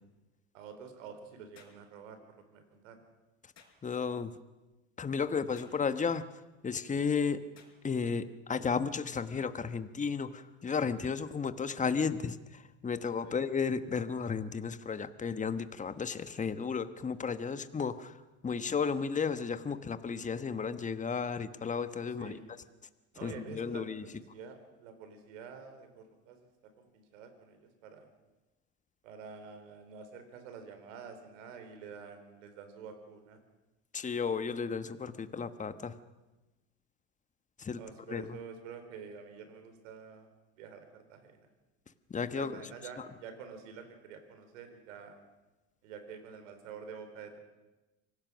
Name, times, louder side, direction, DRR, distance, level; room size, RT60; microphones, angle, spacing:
voice 1, 0.5-2.2 2.5-3.0 13.2-13.4 17.5-17.6 22.2-22.5 23.1-28.1 29.0-33.4 37.7-41.5 42.4-45.2 45.8-47.4, right 6 dB, 80° right, 8 dB, 4.1 m, -48 dB
sound 1, 1.5-1.8 3.5-3.8 5.5-5.8 7.5-7.8, left 6 dB, 45° left, 5.2 m, -58 dB
voice 2, 3.8-4.3 5.0-6.3 6.6-7.4 7.8-18.2 18.4-22.3 23.2-24.1 33.9-36.0 37.6-37.8 38.1-38.4 42.1-42.6, left 5 dB, 20° left, 11 dB, 1.3 m, -33 dB
26.0 x 18.0 x 6.3 m, 1.1 s
supercardioid pair, 95°, 38 cm